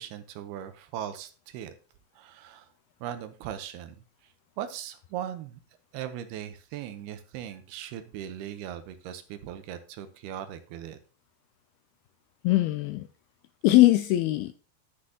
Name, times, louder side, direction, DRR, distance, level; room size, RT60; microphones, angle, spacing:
voice 1, 0.0-1.7 2.2-2.7 3.0-4.0 4.6-5.6 5.9-11.0, right 10 dB, 80° right, 10 dB, 2.6 m, -39 dB
voice 2, 12.4-13.1 13.6-14.5, left 17 dB, 85° left, 10 dB, 2.2 m, -21 dB
9.9 x 9.8 x 2.8 m, 0.36 s
omnidirectional pair, 4.9 m